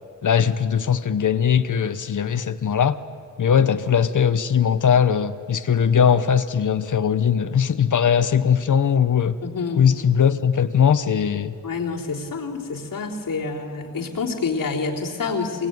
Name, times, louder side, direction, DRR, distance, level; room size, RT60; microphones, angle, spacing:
voice 1, 0.2-3.0 3.4-9.4 9.8-11.5, left 7 dB, 65° left, 11 dB, 0.9 m, -20 dB
voice 2, 9.4-9.9 11.6-15.7, left 4 dB, 85° left, -1 dB, 3.5 m, -27 dB
25.0 x 22.0 x 9.4 m, 2.3 s
wide cardioid pair, 110°, 33 cm